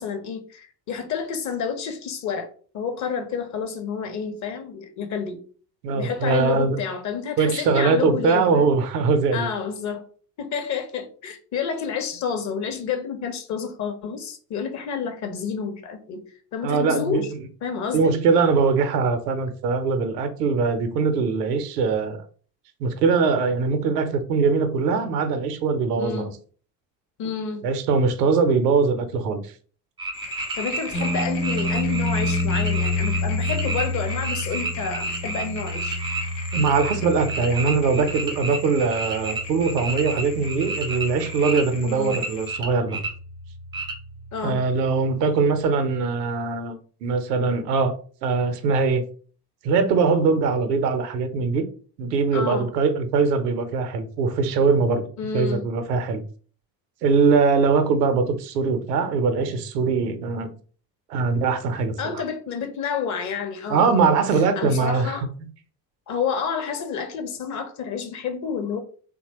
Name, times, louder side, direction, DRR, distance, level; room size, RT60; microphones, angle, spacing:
voice 1, 0.0-2.5 2.7-5.4 5.9-8.7 9.3-10.0 10.4-16.2 16.5-17.3 17.6-18.1 26.0-26.3 27.2-27.7 30.5-36.0 41.8-42.2 44.3-44.6 52.3-52.7 55.2-55.6 62.0-64.1 64.6-65.3 66.1-68.8, left 6 dB, 35° left, 0.6 m, -29 dB
voice 2, 5.8-6.8 7.4-9.5 16.6-17.2 17.9-22.2 22.8-26.3 27.6-29.4 36.5-43.0 44.4-46.7 47.0-47.9 48.2-49.0 49.6-51.7 52.0-55.1 55.3-56.2 57.0-60.5 61.1-62.1 63.7-65.2, right 4 dB, 70° right, 0.6 m, -22 dB
sound 1, 30.0-37.0 37.3-41.6 42.1-43.1 43.7-43.9, right 3 dB, 10° right, 0.3 m, -31 dB
sound 2, 30.1-42.5, left 6 dB, 80° left, 0.7 m, -39 dB
sound 3, 30.9-45.0, left 1 dB, 55° left, 0.9 m, -30 dB
2.8 x 2.1 x 2.8 m
figure-of-eight pair, 55°, 50 cm